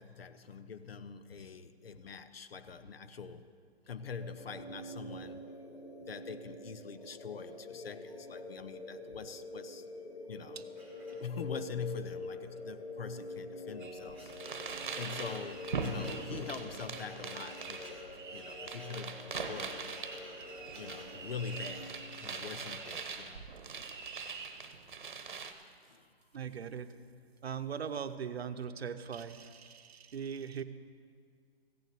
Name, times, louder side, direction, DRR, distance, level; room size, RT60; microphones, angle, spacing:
voice 1, 0.0-3.5 3.9-5.5 6.1-9.8 10.3-10.6 11.1-14.3 15.0-18.0 18.3-19.9 20.7-23.4 23.8-23.9 25.9-26.1, left 6 dB, 65° left, 12 dB, 0.8 m, -44 dB
sound 1, 4.2-21.9, left 2 dB, 80° left, 2.7 m, -46 dB
sound 2, 10.8-11.6 12.3-12.5 12.8-12.9 13.5-22.9, right 1 dB, 5° left, 1.5 m, -53 dB
sound 3, 13.8-25.5, right 5 dB, 50° right, 1.0 m, -42 dB
voice 2, 26.3-26.9 27.4-30.6, right 7 dB, 75° right, 10 dB, 0.9 m, -40 dB
15.5 x 7.1 x 8.2 m, 2.1 s
hypercardioid pair, 170°, 32 cm